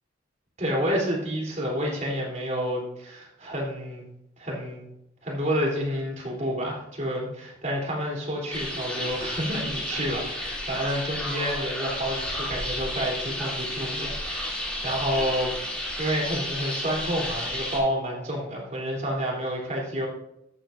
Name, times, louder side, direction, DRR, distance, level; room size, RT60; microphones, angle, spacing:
voice 1, 0.6-4.0 4.4-4.8 5.2-20.1, equal, 40° right, -2 dB, 3.6 m, -29 dB
sound 1, 8.5-17.8, left 1 dB, 5° left, 2.9 m, -32 dB
14.5 x 9.2 x 2.7 m, 0.81 s
head